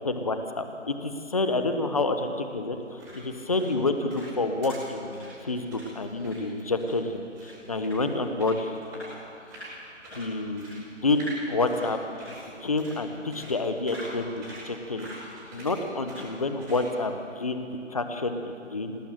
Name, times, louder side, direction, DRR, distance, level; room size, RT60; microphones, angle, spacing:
voice 1, 0.0-9.2 10.1-12.0 12.6-15.1 15.5-19.0, left 2 dB, 30° left, 7 dB, 1.3 m, -29 dB
sound 1, 2.7-16.9, right 1 dB, 10° right, 7.9 m, -45 dB
27.0 x 19.0 x 7.8 m, 2.6 s
figure-of-eight pair, 170°, 38 cm